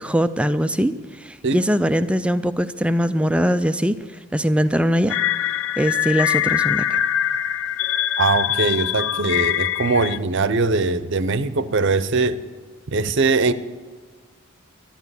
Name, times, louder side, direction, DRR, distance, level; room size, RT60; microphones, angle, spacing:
voice 1, 0.0-4.0 4.3-5.2 5.8-7.0, equal, 5° right, 11 dB, 0.4 m, -21 dB
sound 1, 5.1-10.2, left 11 dB, 60° left, 0.4 m, -23 dB
voice 2, 8.2-12.4 12.9-13.5, right 3 dB, 55° right, 14 dB, 0.7 m, -21 dB
12.0 x 11.5 x 8.2 m, 1.5 s
head